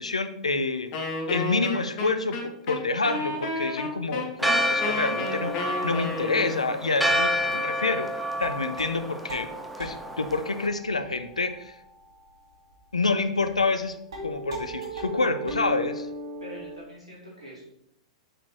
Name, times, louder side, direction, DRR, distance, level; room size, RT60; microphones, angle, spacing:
voice 1, 0.0-8.1 8.4-9.5 9.8-11.7 12.9-16.1, left 3 dB, 80° left, 10 dB, 0.7 m, -28 dB
Wind instrument woodwind instrument, 0.9-6.7, left 2 dB, 45° left, 1.8 m, -32 dB
Church bell, 4.4-10.7, equal, ahead, 1.0 m, -29 dB
sound 1, 5.4-13.9 14.1-16.8, right 1 dB, 70° right, 2.3 m, -40 dB
voice 2, 16.4-17.6, equal, 85° right, -5 dB, 3.5 m, -44 dB
6.6 x 6.1 x 4.5 m, 0.77 s
figure-of-eight pair, 100°, 3 cm